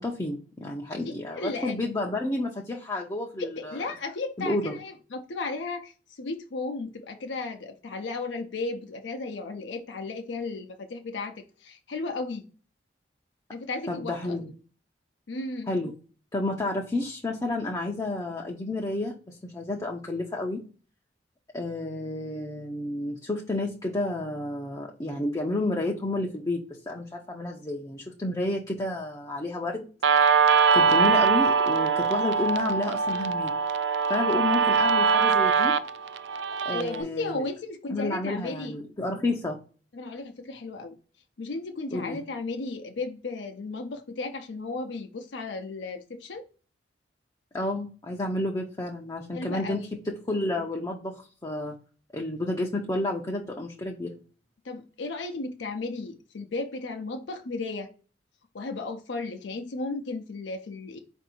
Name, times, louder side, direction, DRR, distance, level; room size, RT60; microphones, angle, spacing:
voice 1, 0.0-3.9 4.4-4.8 13.9-14.5 15.7-15.9 16.3-20.6 21.5-29.8 30.4-33.5 34.1-35.8 36.6-37.4 37.9-39.6 41.9-42.2 47.5-51.7 52.1-54.1, left 2 dB, 20° left, 0.5 m, -31 dB
voice 2, 1.0-1.8 3.4-12.4 13.5-14.4 15.3-15.7 36.7-38.8 39.9-41.0 41.4-46.5 49.3-49.9 54.6-57.9 58.5-61.0, left 3 dB, 70° left, 0.5 m, -34 dB
Guitar, 30.0-37.0, right 5 dB, 70° right, 0.3 m, -22 dB
4.5 x 2.6 x 4.2 m
head